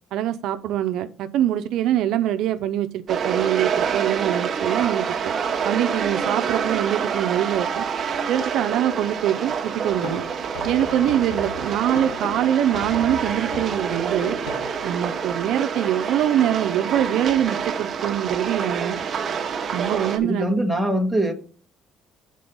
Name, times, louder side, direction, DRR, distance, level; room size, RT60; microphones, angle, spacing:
voice 1, 0.1-5.3 5.6-7.8 8.3-10.2 10.6-14.4 14.8-19.0 19.7-20.5, right 11 dB, 75° right, 10 dB, 0.5 m, -23 dB
sound 1, 3.1-20.2, right 6 dB, 40° right, 1.0 m, -27 dB
sound 2, 9.9-15.4, left 4 dB, 90° left, 1.4 m, -38 dB
voice 2, 20.2-21.3, right 1 dB, ahead, 0 dB, 1.5 m, -22 dB
7.5 x 4.3 x 5.4 m, 0.41 s
cardioid pair, 120°, 0 cm